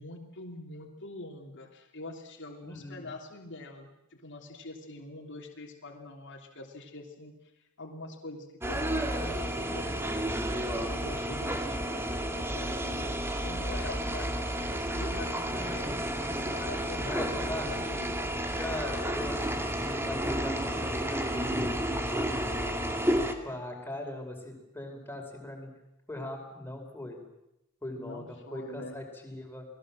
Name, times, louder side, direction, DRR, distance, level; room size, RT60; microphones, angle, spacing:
voice 1, 0.0-3.9 4.2-7.3 7.8-10.1 10.7-13.2 13.4-14.4 14.7-16.0 16.4-17.4 17.6-18.2 28.0-29.0, left 2 dB, 55° left, 0 dB, 3.2 m, -44 dB
voice 2, 2.6-3.1 11.0-11.5 17.0-17.7 18.6-21.6 22.1-22.8 23.4-25.7 26.1-27.2 27.8-29.7, left 1 dB, 10° left, 2 dB, 5.2 m, -40 dB
sound 1, 8.6-23.3, right 1 dB, 10° right, 2.1 m, -31 dB
29.5 x 20.5 x 7.6 m, 0.87 s
head